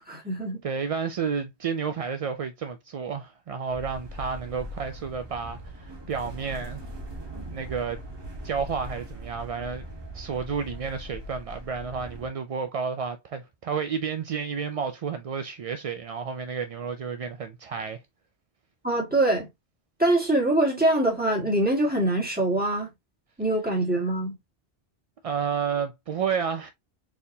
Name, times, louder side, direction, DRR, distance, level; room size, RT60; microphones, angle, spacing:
voice 1, 0.0-0.6 18.8-19.5 20.0-22.9 23.4-24.4, right 1 dB, 10° right, 1.9 m, -24 dB
voice 2, 0.6-6.8 7.5-8.0 8.4-9.8 10.1-18.0 25.2-26.7, right 6 dB, 55° right, 0.4 m, -31 dB
sound 1, 3.7-12.3, right 1 dB, 25° right, 1.3 m, -40 dB
4.3 x 3.5 x 2.7 m
omnidirectional pair, 1.1 m